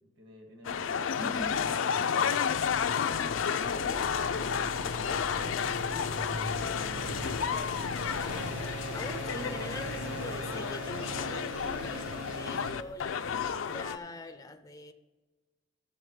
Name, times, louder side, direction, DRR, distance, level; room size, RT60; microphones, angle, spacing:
voice 1, 0.0-7.6, equal, 65° right, 2 dB, 1.9 m, -54 dB
sound 1, 0.6-14.0, left 7 dB, 85° left, 0.4 m, -31 dB
voice 2, 1.2-1.6 8.9-14.9, left 2 dB, 20° left, 9 dB, 0.4 m, -43 dB
sound 2, 3.6-12.7, right 1 dB, 85° right, 1.4 m, -40 dB
12.0 x 7.8 x 3.2 m, 1.2 s
head